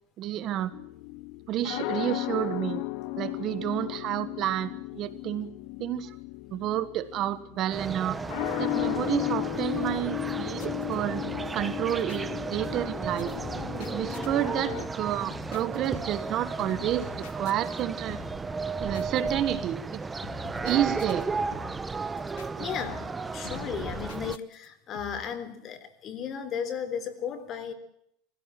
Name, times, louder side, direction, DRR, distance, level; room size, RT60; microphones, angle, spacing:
voice 1, 0.2-0.7 1.5-2.8 3.2-5.5 5.8-6.2 6.5-8.2 8.6-11.2 11.5-13.3 13.8-18.2 18.8-20.0 20.6-21.3 22.6-22.7, right 12 dB, 40° right, 13 dB, 1.3 m, -30 dB
sound 1, 0.7-14.9, left 18 dB, 60° left, 0.9 m, -35 dB
sound 2, 7.7-24.4, right 4 dB, 15° right, 0.8 m, -34 dB
Drum kit, 10.6-11.0 11.2-11.6 11.9-12.2 12.5-12.9 13.2-14.3 14.7-15.0 15.3-16.3 16.6-17.8 18.1-18.5 18.9-19.8 20.2-21.3 21.5-21.9 22.2-22.5 22.8-23.2 23.4-24.7 24.9-25.3, left 11 dB, 90° left, 1.6 m, -46 dB
voice 2, 22.6-27.7, left 7 dB, 35° left, 9 dB, 3.5 m, -35 dB
23.5 x 16.5 x 7.5 m, 0.74 s
supercardioid pair, 140°, 0 cm